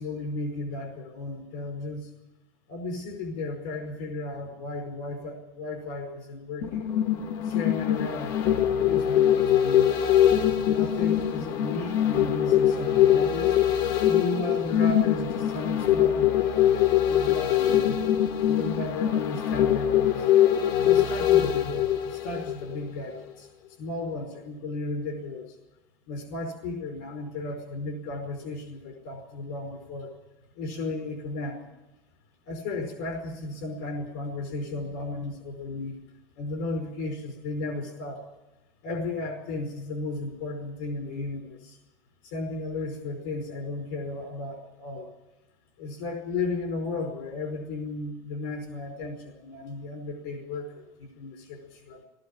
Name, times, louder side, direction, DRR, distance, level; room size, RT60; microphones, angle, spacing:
voice 1, 0.0-2.1 2.7-6.8 7.4-10.2 10.6-13.6 14.1-18.0 18.4-20.3 20.8-23.5 23.8-25.6 26.1-30.1 30.5-31.7 32.4-36.0 36.3-38.2 38.8-41.8 42.2-45.1 45.8-52.0, left 2 dB, 75° left, 5 dB, 4.9 m, -34 dB
sound 1, 6.6-22.8 23.2-23.3, left 10 dB, 50° left, 1.4 m, -23 dB
19.0 x 14.0 x 9.9 m, 1.0 s
cardioid pair, 170°, 9 cm